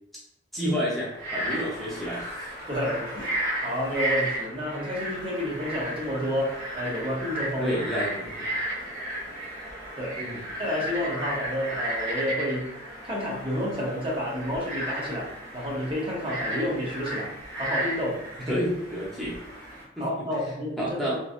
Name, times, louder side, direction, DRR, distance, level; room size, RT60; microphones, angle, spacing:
voice 1, 0.5-2.5 7.6-8.5 10.1-10.5 18.5-19.4 20.0-20.1 20.8-21.2, equal, ahead, -7 dB, 0.6 m, -30 dB
Frog, 1.1-19.8, right 1 dB, 50° right, 1.4 m, -34 dB
voice 2, 2.7-7.8 10.0-10.3 10.6-12.7 13.0-17.3 17.6-18.6 20.0-21.2, equal, 30° right, -4 dB, 0.8 m, -30 dB
2.9 x 2.6 x 2.4 m, 0.81 s
head